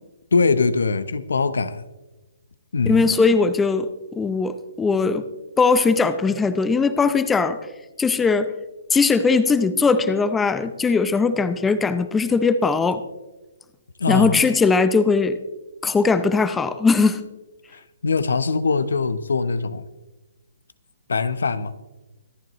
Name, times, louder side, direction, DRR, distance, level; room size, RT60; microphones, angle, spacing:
voice 1, 0.3-1.8 2.7-3.1 14.0-14.4 17.7-19.8 21.1-21.7, left 4 dB, 80° left, 14 dB, 0.8 m, -22 dB
voice 2, 2.8-3.9 4.1-5.2 5.6-7.6 8.0-8.5 8.9-13.0 14.1-15.4 15.8-17.2, left 4 dB, 10° left, 12 dB, 0.7 m, -19 dB
24.5 x 9.2 x 3.1 m, 1.1 s
hypercardioid pair, 145°, 0 cm